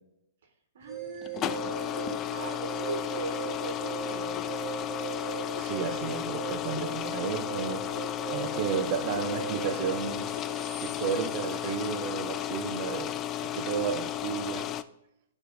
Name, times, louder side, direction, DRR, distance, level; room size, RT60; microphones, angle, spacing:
voice 1, 0.7-4.4, right 4 dB, 65° right, 2 dB, 1.6 m, -40 dB
sound 1, 0.9-12.1, right 7 dB, 5° right, 1.2 m, -40 dB
sound 2, 1.1-14.8, left 11 dB, 25° left, 0.3 m, -34 dB
sound 3, 2.0-11.4, left 5 dB, 55° left, 1.1 m, -44 dB
voice 2, 5.5-7.8 8.3-10.3 10.8-13.1 13.4-14.7, right 8 dB, 45° right, 7 dB, 0.9 m, -33 dB
9.3 x 3.3 x 4.0 m, 0.83 s
hypercardioid pair, 125°, 0 cm